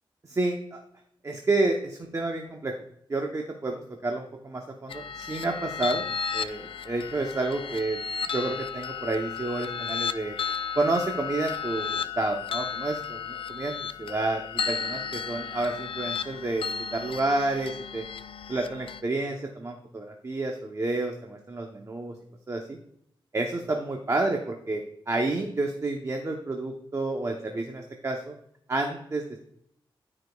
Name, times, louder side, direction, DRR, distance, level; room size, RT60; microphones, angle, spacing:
voice 1, 0.3-0.8 1.2-2.7 3.1-6.1 6.3-8.0 8.3-10.4 10.8-13.7 14.0-14.4 14.7-18.0 18.5-22.1 22.5-22.8 23.3-28.3 28.7-29.2, right 2 dB, 35° right, 2 dB, 0.8 m, -30 dB
sound 1, 4.9-19.0, left 6 dB, 75° left, 0.4 m, -34 dB
13.0 x 5.1 x 2.3 m, 0.70 s
wide cardioid pair, 95°, 9 cm